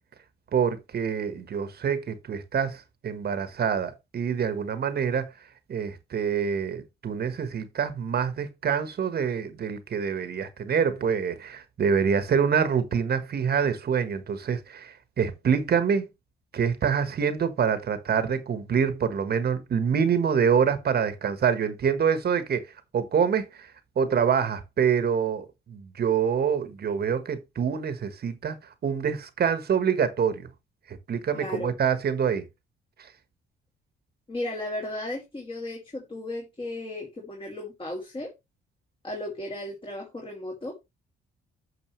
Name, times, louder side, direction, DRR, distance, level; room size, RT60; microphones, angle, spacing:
voice 1, 0.5-5.3 5.7-16.1 16.5-22.6 22.9-23.7 24.0-28.6 28.8-30.5 30.9-32.4, right 7 dB, 50° right, 1.4 m, -26 dB
voice 2, 31.3-31.7 34.3-38.3 39.0-40.7, left 1 dB, 25° left, 2.7 m, -35 dB
9.3 x 6.0 x 3.2 m
cardioid pair, 90°, 20 cm